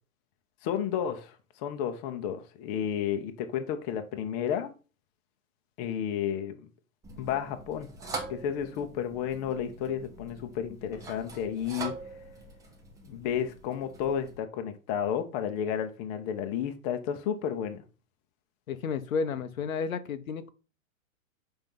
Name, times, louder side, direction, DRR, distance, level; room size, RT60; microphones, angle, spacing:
voice 1, 0.6-4.7 5.8-6.7 7.2-7.9 8.3-11.9 13.0-17.8, left 8 dB, 30° left, 0.9 m, -32 dB
sound 1, 7.0-14.4, right 3 dB, 10° right, 0.7 m, -43 dB
voice 2, 18.7-20.5, left 5 dB, 75° left, 1.0 m, -32 dB
5.7 x 4.5 x 5.4 m
hypercardioid pair, 145°, 41 cm